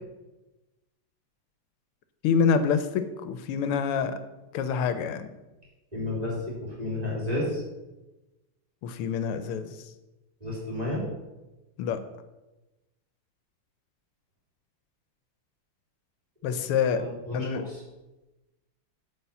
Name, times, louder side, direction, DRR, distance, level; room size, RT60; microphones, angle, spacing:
voice 1, 2.2-4.2 4.5-5.3 8.8-9.7 11.8-12.0 16.4-17.0 17.3-17.6, left 6 dB, 85° left, 10 dB, 1.6 m, -26 dB
voice 2, 5.9-7.6 10.4-11.0 16.5-16.6 16.9-17.8, left 1 dB, 15° right, -6 dB, 3.3 m, -32 dB
8.5 x 4.4 x 6.8 m, 1.0 s
omnidirectional pair, 2.4 m